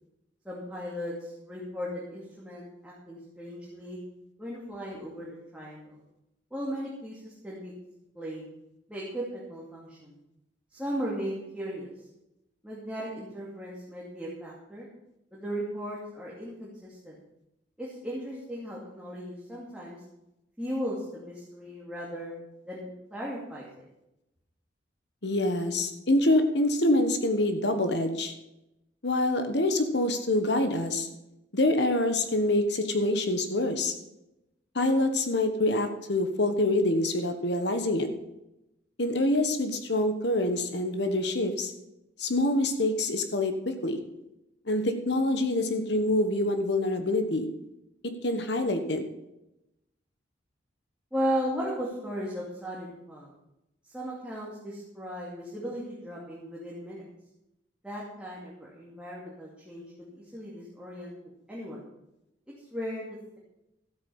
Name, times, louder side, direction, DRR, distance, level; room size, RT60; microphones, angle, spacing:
voice 1, 0.4-4.0 4.4-6.0 6.5-7.7 8.1-8.5 8.9-10.1 10.7-11.9 12.6-14.9 15.3-17.2 17.8-20.0 20.6-23.8 51.1-53.3 53.8-57.1 57.8-61.8 62.7-63.1, equal, 5° right, -6 dB, 2.4 m, -36 dB
voice 2, 25.2-28.3 29.0-31.1 31.5-33.9 34.7-38.1 39.0-41.7 42.2-44.0 44.7-47.4 48.2-49.0, left 1 dB, 60° left, 7 dB, 1.4 m, -26 dB
13.5 x 8.3 x 5.6 m, 0.89 s
head